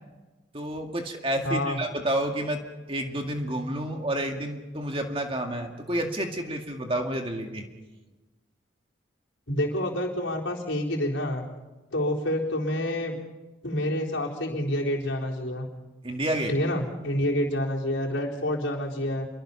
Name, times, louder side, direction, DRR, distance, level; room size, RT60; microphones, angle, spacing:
voice 1, 0.5-7.6 16.0-16.5, right 1 dB, 30° right, 3 dB, 2.1 m, -30 dB
voice 2, 1.4-1.8 9.5-11.4 11.9-13.2 13.6-15.7 16.5-19.3, left 1 dB, 75° left, -2 dB, 4.1 m, -28 dB
27.5 x 23.5 x 5.8 m, 1.2 s
head